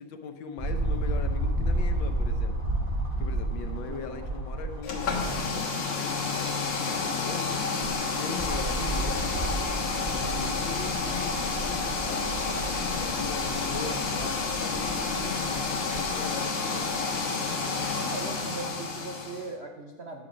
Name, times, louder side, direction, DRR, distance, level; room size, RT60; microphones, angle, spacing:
voice 1, 0.0-2.6 3.2-12.4 12.9-17.5, left 6 dB, 70° left, 7 dB, 1.5 m, -40 dB
sound 1, 0.6-5.6 6.1-6.2 7.5-16.1 16.8-16.9, right 1 dB, 25° right, 1.6 m, -32 dB
voice 2, 3.7-4.3 18.0-20.3, right 3 dB, 70° right, 2 dB, 0.6 m, -39 dB
sound 2, 4.8-19.5, left 4 dB, 90° left, 2.2 m, -30 dB
10.5 x 7.0 x 5.0 m, 1.2 s
omnidirectional pair, 2.3 m